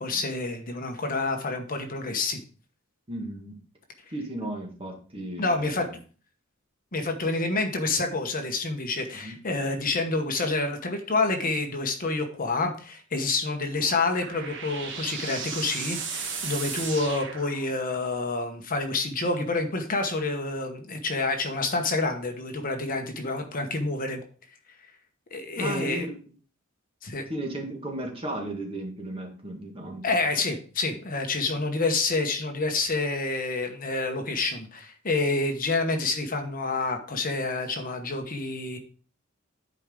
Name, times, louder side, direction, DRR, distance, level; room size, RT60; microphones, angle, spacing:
voice 1, 0.0-2.4 5.4-5.9 6.9-24.2 25.3-26.1 27.0-27.2 30.0-38.8, left 3 dB, 40° left, 5 dB, 1.1 m, -28 dB
voice 2, 3.1-3.6 4.1-5.9 9.1-9.4 25.6-26.1 27.3-30.1, right 1 dB, 25° right, 1 dB, 1.7 m, -35 dB
sound 1, 13.6-18.1, right 5 dB, 60° right, 1.4 m, -36 dB
10.5 x 4.8 x 3.7 m, 0.40 s
head